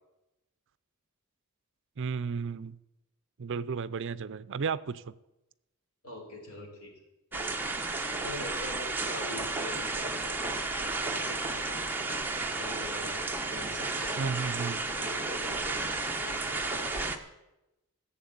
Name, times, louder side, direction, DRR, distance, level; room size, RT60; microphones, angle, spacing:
voice 1, 2.0-2.8 3.4-5.2 14.2-14.8, right 5 dB, 55° right, 17 dB, 0.5 m, -33 dB
voice 2, 6.0-6.9 7.3-7.6 7.9-11.9 12.5-14.4 15.0-17.1, left 1 dB, 80° left, 1 dB, 4.2 m, -44 dB
sound 1, 7.3-17.2, right 3 dB, 10° right, 1.1 m, -33 dB
15.5 x 7.3 x 8.7 m, 0.96 s
head